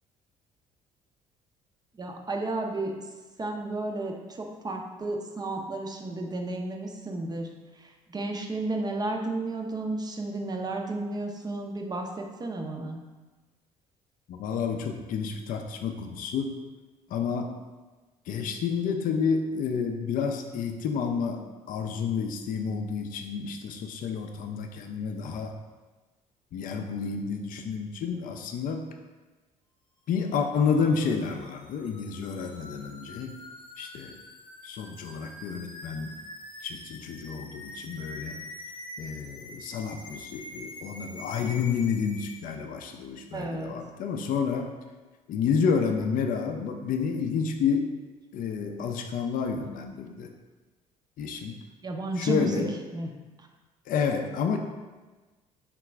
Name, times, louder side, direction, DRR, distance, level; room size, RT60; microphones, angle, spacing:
voice 1, 1.9-2.9 3.4-7.5 7.8-13.0 43.3-43.7 51.8-52.6 52.9-53.1, right 2 dB, 20° right, 2 dB, 0.5 m, -32 dB
voice 2, 14.3-16.6 17.1-17.5 18.3-25.5 26.5-28.9 30.1-33.4 33.8-34.1 34.6-36.1 36.6-38.4 39.0-44.7 45.3-47.9 48.3-50.3 51.2-51.6 52.2-52.7 53.9-54.6, left 6 dB, 45° left, 4 dB, 0.5 m, -30 dB
sound 1, 30.1-42.4, left 1 dB, 25° left, 1.0 m, -45 dB
3.7 x 2.2 x 4.3 m, 1.2 s
figure-of-eight pair, 50°, 20 cm